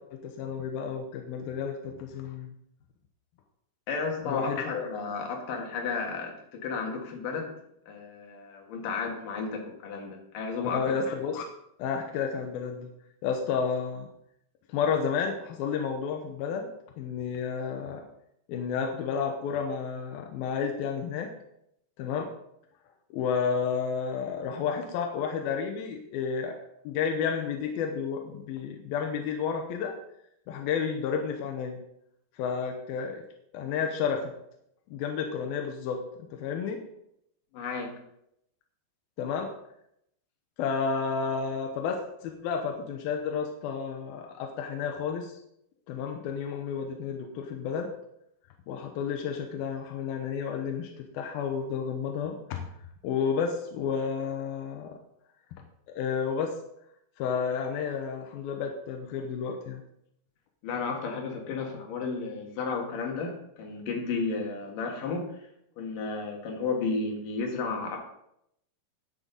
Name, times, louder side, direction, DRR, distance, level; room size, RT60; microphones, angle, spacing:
voice 1, 0.1-2.5 4.2-4.9 10.6-11.5 11.8-12.9 13.2-14.1 14.7-16.7 17.0-18.0 18.5-21.3 22.0-22.3 23.1-26.6 26.8-29.9 30.5-31.8 32.3-33.2 33.5-34.3 34.9-36.0 36.3-36.8 39.2-39.5 40.6-45.4 45.9-47.9 48.7-52.7 53.0-55.0 55.9-56.5 57.2-59.8, left 6 dB, 80° left, 3 dB, 2.2 m, -31 dB
voice 2, 3.9-7.5 7.9-10.8 37.5-38.0 60.6-65.5 65.8-68.0, left 4 dB, 60° left, 1 dB, 2.7 m, -33 dB
9.9 x 8.8 x 4.0 m, 0.77 s
omnidirectional pair, 5.4 m